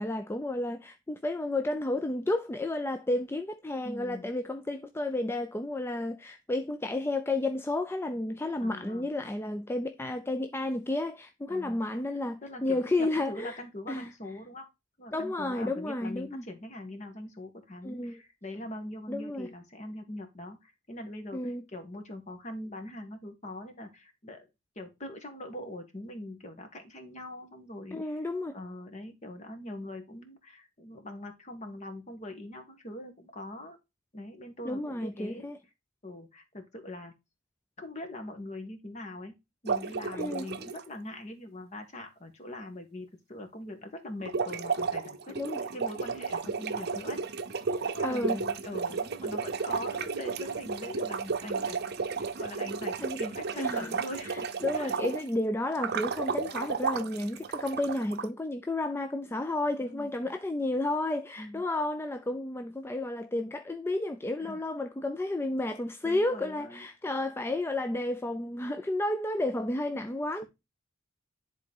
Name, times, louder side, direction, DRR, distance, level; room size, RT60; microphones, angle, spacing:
voice 1, 0.0-13.6 13.9-14.1 15.1-16.4 17.8-18.2 19.1-19.5 21.3-21.6 27.9-28.6 34.6-35.6 40.1-40.5 45.4-45.6 47.7-48.4 53.0-53.2 53.6-53.9 54.2-70.4, left 2 dB, 10° left, 0.4 m, -32 dB
voice 2, 3.8-4.3 8.6-9.1 11.5-11.8 12.4-14.7 15.0-24.5 24.7-28.2 28.5-33.8 34.1-35.5 36.0-37.1 37.8-39.3 39.6-47.4 47.8-54.5 54.7-54.9 59.8-60.1 61.4-61.6 64.4-64.6 66.0-66.9, left 1 dB, 35° left, 1.5 m, -42 dB
sound 1, 39.7-40.8 44.2-55.3 55.8-58.2, right 5 dB, 55° right, 0.7 m, -33 dB
10.5 x 3.9 x 3.6 m
head